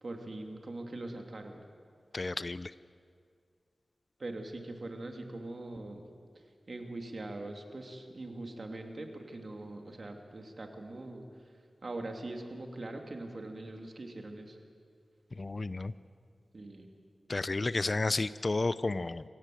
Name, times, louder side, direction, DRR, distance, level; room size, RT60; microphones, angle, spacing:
voice 1, 0.0-1.6 4.2-6.0 6.7-11.3 11.8-14.6 16.5-16.9, right 2 dB, 55° right, 3 dB, 2.6 m, -42 dB
voice 2, 2.1-2.7 15.4-15.9 17.3-19.2, left 2 dB, 40° left, 16 dB, 0.5 m, -31 dB
26.5 x 16.5 x 7.7 m, 2.2 s
wide cardioid pair, 75°, 0 cm